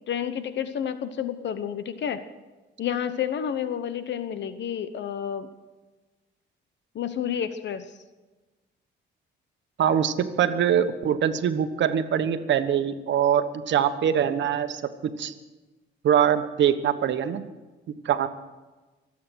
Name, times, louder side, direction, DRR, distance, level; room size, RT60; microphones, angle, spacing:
voice 1, 0.1-2.2 2.8-5.5 6.9-7.9, left 9 dB, 65° left, 11 dB, 1.0 m, -30 dB
voice 2, 9.8-15.3 16.0-17.4 18.0-18.3, right 9 dB, 65° right, 10 dB, 1.2 m, -23 dB
24.0 x 8.6 x 6.3 m, 1.2 s
cardioid pair, 90°, 20 cm